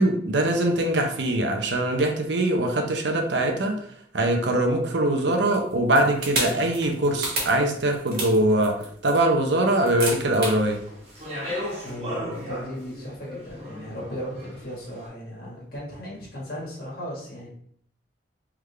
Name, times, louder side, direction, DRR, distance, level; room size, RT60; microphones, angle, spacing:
voice 1, 0.0-3.8 4.1-8.8 9.0-10.8, right 1 dB, 70° right, 3 dB, 0.7 m, -22 dB
sound 1, 5.3-10.6, right 2 dB, 55° right, 1.4 m, -31 dB
Speech, 10.6-14.8, left 1 dB, 35° right, 1.3 m, -36 dB
voice 2, 11.8-17.5, equal, 55° left, -4 dB, 1.6 m, -36 dB
3.6 x 3.5 x 3.3 m, 0.64 s
head